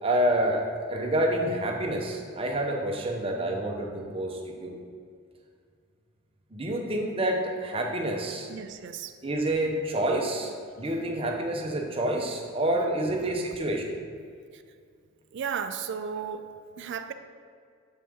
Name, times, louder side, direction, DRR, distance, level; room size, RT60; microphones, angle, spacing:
voice 1, 0.0-4.7 6.5-8.5 9.2-10.5 10.8-13.8, right 1 dB, 25° right, 1 dB, 0.6 m, -28 dB
voice 2, 8.5-9.2 14.5-14.6 15.3-16.4 16.8-17.1, right 7 dB, 55° right, 9 dB, 0.3 m, -34 dB
7.3 x 4.4 x 3.5 m, 2.2 s
head